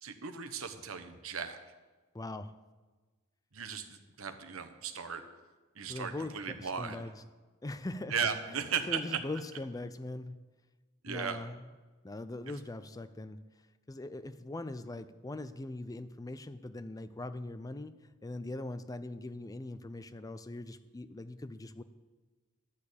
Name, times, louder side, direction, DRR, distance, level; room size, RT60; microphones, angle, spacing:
voice 1, 0.0-1.6 3.5-5.2 5.7-7.0 8.1-9.2 11.0-11.4, right 6 dB, 85° right, 8 dB, 1.1 m, -36 dB
voice 2, 2.1-2.6 5.9-7.2 7.6-8.1 8.5-10.4 11.1-11.6 12.0-13.4 13.9-18.0 18.2-21.8, left 2 dB, 15° left, 12 dB, 0.4 m, -41 dB
12.5 x 6.6 x 8.4 m, 1.3 s
head